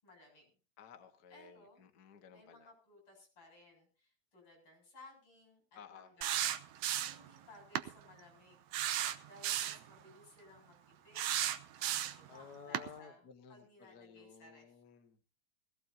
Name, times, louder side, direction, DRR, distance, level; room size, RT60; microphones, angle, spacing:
voice 1, 0.0-0.5 1.3-1.8 2.3-6.5 7.0-8.6 9.2-11.4 11.8-14.8, left 2 dB, 35° left, 2 dB, 8.0 m, -59 dB
voice 2, 0.8-2.7 5.7-6.1 12.3-15.2, left 7 dB, 65° left, 6 dB, 0.9 m, -55 dB
sound 1, 6.2-7.3 7.7-7.9 8.7-9.8 11.1-12.3 12.7-12.9, right 12 dB, 75° right, 1.9 m, -34 dB
19.5 x 17.0 x 2.8 m, 0.36 s
omnidirectional pair, 4.0 m